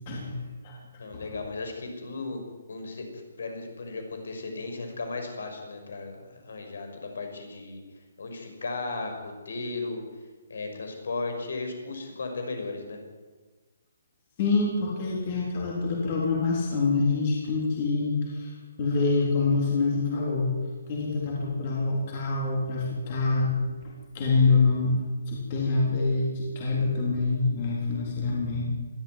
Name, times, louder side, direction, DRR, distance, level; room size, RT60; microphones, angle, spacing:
voice 1, 0.1-0.4 0.6-0.8 1.1-1.2 14.4-20.5 20.9-23.5 23.8-28.6, left 3 dB, 25° left, -3 dB, 3.8 m, -26 dB
voice 2, 1.0-2.4 2.7-3.1 3.4-7.8 8.2-10.0 10.5-13.0, left 3 dB, 65° left, 5 dB, 6.0 m, -35 dB
21.5 x 14.5 x 9.4 m, 1.3 s
hypercardioid pair, 180°, 0 cm